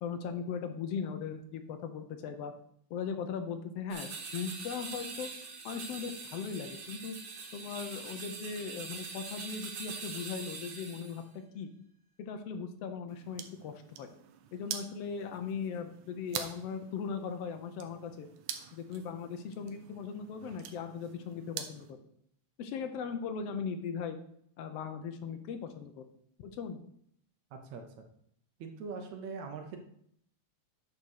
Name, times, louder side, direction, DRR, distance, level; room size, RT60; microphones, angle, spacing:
voice 1, 0.0-2.5 2.9-5.3 5.6-7.1 7.5-11.2 11.5-11.7 12.2-14.1 14.5-18.3 18.7-22.0 22.6-24.2 24.6-26.0 26.4-26.8, left 6 dB, 70° left, 7 dB, 1.5 m, -38 dB
sound 1, 3.9-11.2, right 4 dB, 50° right, 2.1 m, -43 dB
sound 2, 13.1-21.9, right 9 dB, 90° right, 2.2 m, -46 dB
voice 2, 27.5-28.1 28.6-29.8, right 5 dB, 75° right, 5 dB, 2.1 m, -42 dB
9.7 x 4.1 x 6.4 m, 0.69 s
omnidirectional pair, 3.4 m